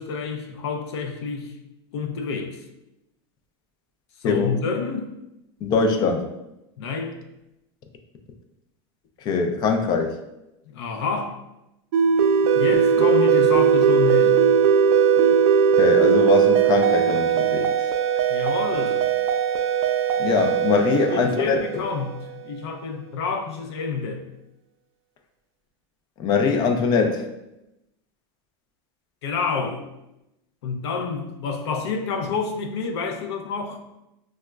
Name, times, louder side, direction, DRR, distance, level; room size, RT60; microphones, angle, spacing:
voice 1, 0.0-1.5 1.9-2.6 4.2-5.1 6.8-7.2 10.7-11.4 12.5-14.4 18.3-19.1 20.9-24.2 29.2-29.8 30.6-33.8, left 4 dB, 85° left, 4 dB, 0.5 m, -28 dB
voice 2, 4.2-4.6 5.6-6.3 9.2-10.2 15.8-17.7 20.2-21.8 26.2-27.2, left 5 dB, 30° left, 5 dB, 0.4 m, -22 dB
sound 1, 11.9-22.3, right 7 dB, 75° right, 0.4 m, -19 dB
4.7 x 2.1 x 2.2 m, 0.91 s
supercardioid pair, 145°, 14 cm